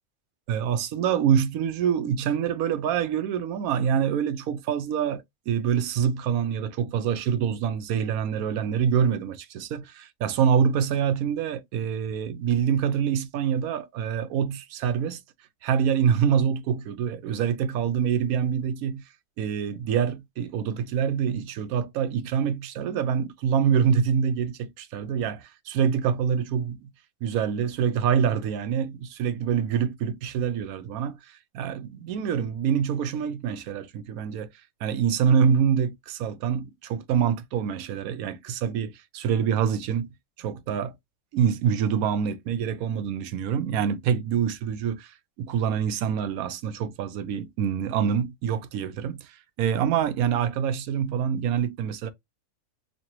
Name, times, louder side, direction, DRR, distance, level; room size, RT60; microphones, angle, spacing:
voice 1, 0.5-15.2 15.6-19.0 19.4-26.9 27.2-34.5 34.8-40.1 40.4-40.9 41.3-52.1, right 8 dB, 85° right, 1.0 m, -26 dB
4.1 x 2.6 x 3.0 m
omnidirectional pair, 1.5 m